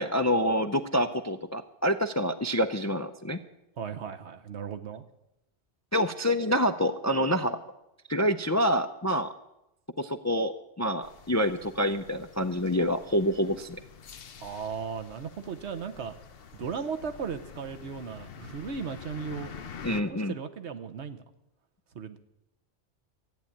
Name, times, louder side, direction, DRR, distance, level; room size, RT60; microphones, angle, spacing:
voice 1, 0.0-3.4 5.9-7.6 8.1-9.3 10.0-13.8 19.8-20.3, equal, 25° left, 9 dB, 0.4 m, -27 dB
voice 2, 3.8-5.0 14.4-16.1 16.5-19.5 19.9-21.2 21.9-22.2, right 6 dB, 75° right, 8 dB, 1.2 m, -36 dB
sound 1, 11.0-20.0, left 6 dB, 60° left, 1.0 m, -47 dB
14.0 x 9.3 x 8.5 m, 0.90 s
omnidirectional pair, 1.2 m